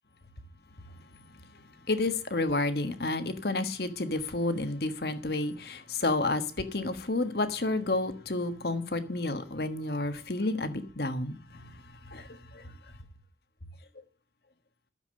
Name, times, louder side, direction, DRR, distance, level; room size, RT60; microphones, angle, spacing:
voice 1, 1.9-12.7, left 2 dB, 65° left, 1.4 m, -31 dB
12.0 x 7.4 x 6.4 m
head